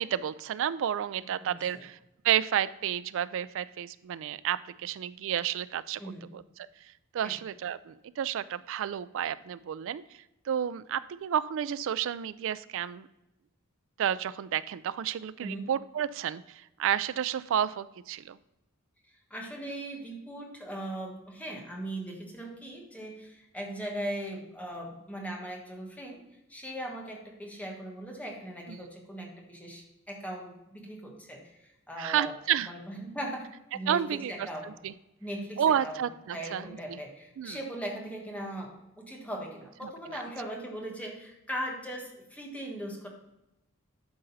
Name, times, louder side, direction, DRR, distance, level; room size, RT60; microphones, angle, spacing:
voice 1, 0.0-2.0 2.2-6.0 6.3-6.7 7.1-10.0 10.5-13.1 14.0-18.4 32.0-32.7 33.9-34.9 35.6-37.0 37.4-37.6 40.1-40.2, right 9 dB, 60° right, 16 dB, 0.3 m, -31 dB
voice 2, 1.4-1.9 6.0-6.3 7.2-7.3 15.4-15.7 19.3-26.2 26.5-33.5 33.7-34.7 35.2-36.0 36.3-43.1, right 1 dB, 5° left, -1 dB, 1.4 m, -39 dB
11.5 x 3.9 x 4.0 m, 0.91 s
head